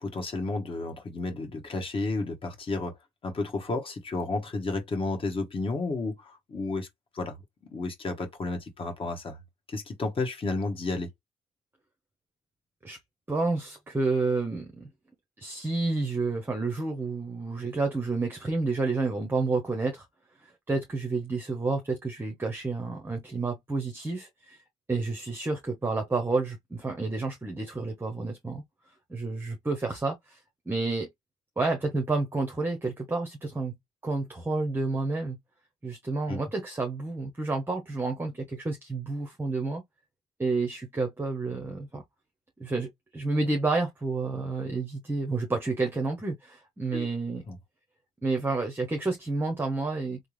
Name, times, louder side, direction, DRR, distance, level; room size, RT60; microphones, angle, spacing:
voice 1, 0.0-3.0 3.2-6.9 7.1-7.4 7.7-9.4 9.7-11.1 36.3-36.4 46.9-47.1 47.5-47.6, left 3 dB, 30° left, 1.2 m, -32 dB
voice 2, 13.3-14.9 15.4-20.1 20.4-24.6 24.9-28.6 29.1-30.4 30.7-31.1 31.6-33.8 34.0-35.4 35.8-39.8 40.4-42.0 42.6-47.4 48.2-50.2, right 3 dB, 15° right, 0.8 m, -30 dB
3.4 x 2.0 x 3.1 m
cardioid pair, 110°, 17 cm